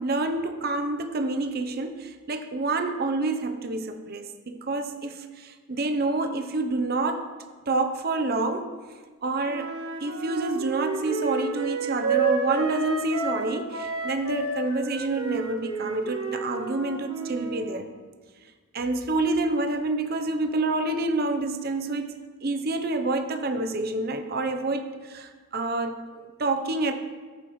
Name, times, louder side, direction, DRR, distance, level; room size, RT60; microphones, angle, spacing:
voice 1, 0.0-7.3 7.7-8.7 9.2-9.7 10.0-17.9 18.7-22.1 22.4-26.9, right 2 dB, 45° right, 6 dB, 0.7 m, -28 dB
Wind instrument woodwind instrument, 9.5-13.4 13.7-17.7, right 4 dB, 75° right, 1.5 m, -30 dB
14.0 x 8.3 x 3.1 m, 1.5 s
head